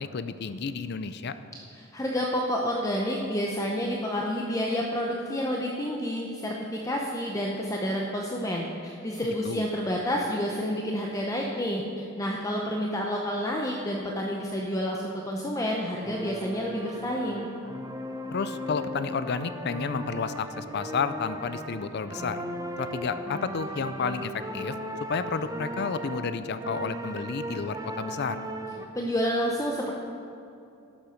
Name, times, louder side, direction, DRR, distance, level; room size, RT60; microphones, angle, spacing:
voice 1, 0.0-1.3 9.4-9.7 18.3-22.4 22.8-24.8 25.1-28.4, left 5 dB, 55° left, 12 dB, 0.5 m, -31 dB
voice 2, 1.7-17.5 28.9-29.9, equal, 15° left, -1 dB, 0.7 m, -29 dB
sound 1, 16.0-28.8, equal, 15° right, 0.7 m, -37 dB
11.5 x 7.3 x 6.4 m, 2.8 s
head